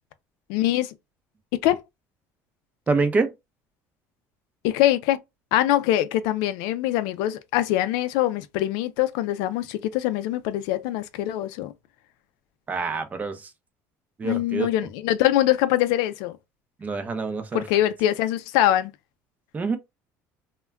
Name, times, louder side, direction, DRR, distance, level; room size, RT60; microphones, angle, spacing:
voice 1, 0.5-0.9 1.5-1.8 4.6-5.2 5.5-11.7 14.2-16.3 17.5-18.9, left 13 dB, 80° left, 0.4 m, -23 dB
voice 2, 2.9-3.3 12.7-13.5 14.2-14.7 16.8-17.9 19.5-19.8, right 4 dB, 25° right, 0.6 m, -26 dB
2.2 x 2.1 x 3.4 m
cardioid pair, 125°, 7 cm